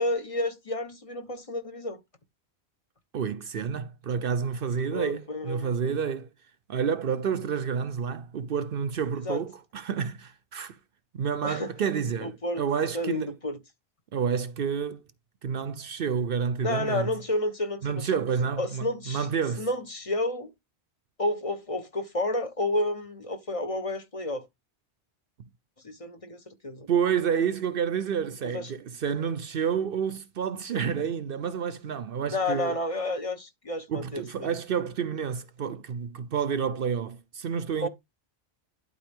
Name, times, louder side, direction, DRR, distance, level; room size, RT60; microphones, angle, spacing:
voice 1, 0.0-2.0 4.9-5.7 9.2-9.4 11.4-11.7 12.2-12.6 12.9-13.6 16.6-18.2 18.6-19.3 19.6-20.5 21.2-24.4 25.8-26.9 28.5-28.7 32.3-34.5 37.8-37.9, left 1 dB, 30° left, 1.3 m, -30 dB
voice 2, 3.1-6.3 6.7-10.8 11.1-13.3 14.1-15.0 15.4-17.1 17.8-19.7 26.9-32.8 33.9-37.9, right 7 dB, 65° right, 0.8 m, -29 dB
11.5 x 4.1 x 3.6 m
omnidirectional pair, 1.1 m